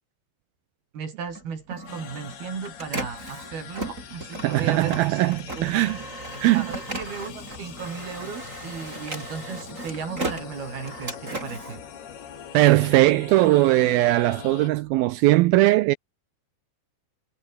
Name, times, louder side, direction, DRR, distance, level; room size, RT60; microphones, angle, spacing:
voice 1, 0.9-5.2 5.6-5.9 6.5-11.8, right 5 dB, 60° right, 6.6 m, -35 dB
Printer, 1.3-12.7 13.2-15.0, right 2 dB, 15° right, 7.0 m, -37 dB
sound 1, 1.9-14.7, left 9 dB, 70° left, 4.7 m, -43 dB
voice 2, 4.4-6.0 6.4-6.7 12.5-16.0, right 17 dB, 85° right, 2.2 m, -19 dB
omnidirectional pair, 4.9 m